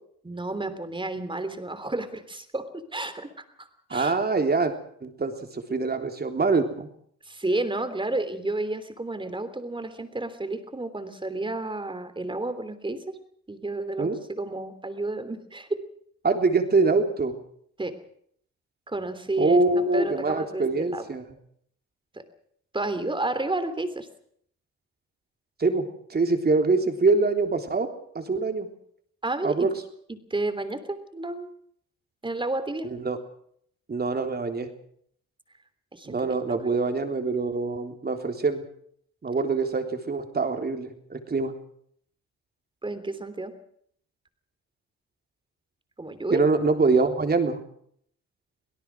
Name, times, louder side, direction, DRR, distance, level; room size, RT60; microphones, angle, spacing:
voice 1, 0.2-4.2 7.3-13.1 13.5-15.8 17.8-17.9 18.9-21.1 22.1-22.2 22.7-24.1 29.2-29.7 30.1-31.5 32.2-32.9 35.9-36.6 42.8-43.5 46.0-46.4, right 2 dB, 15° right, 10 dB, 3.2 m, -31 dB
voice 2, 3.9-4.7 5.0-6.9 14.0-14.2 16.2-17.4 19.4-21.2 25.6-28.7 29.4-29.7 32.8-33.2 33.9-34.7 36.1-38.6 39.2-41.5 46.3-47.6, right 3 dB, 30° right, 6 dB, 3.5 m, -24 dB
25.0 x 17.5 x 6.3 m, 0.65 s
cardioid pair, 90°, 30 cm